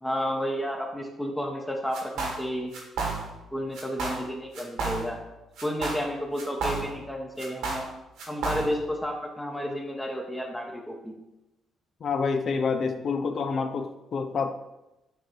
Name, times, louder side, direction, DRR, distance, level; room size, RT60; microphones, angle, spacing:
voice 1, 0.0-2.7 3.5-5.2 5.6-7.8 8.3-11.1, equal, 10° left, 1 dB, 1.0 m, -31 dB
sound 1, 1.9-2.5 2.7-3.5 3.7-4.3 4.5-5.3 5.6-7.1 7.4-8.9, right 3 dB, 90° right, 1.9 m, -32 dB
voice 2, 12.0-14.5, left 5 dB, 55° left, 7 dB, 0.7 m, -28 dB
8.9 x 3.1 x 4.6 m, 0.97 s
cardioid pair, 90°, 0 cm